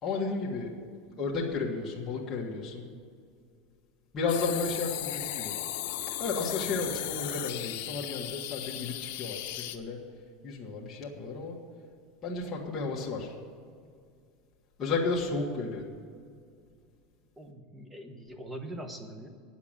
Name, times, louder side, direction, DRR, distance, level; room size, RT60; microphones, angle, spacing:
voice 1, 0.0-0.7 1.2-2.9 4.1-5.5 6.2-10.0 10.4-11.6 12.2-13.3 14.8-15.9, left 4 dB, 25° left, -4 dB, 1.8 m, -33 dB
sound 1, 4.3-9.8, left 13 dB, 65° left, 0.9 m, -36 dB
voice 2, 17.4-19.3, right 1 dB, 15° right, 6 dB, 1.1 m, -42 dB
9.7 x 7.2 x 8.9 m, 2.2 s
supercardioid pair, 150°, 0 cm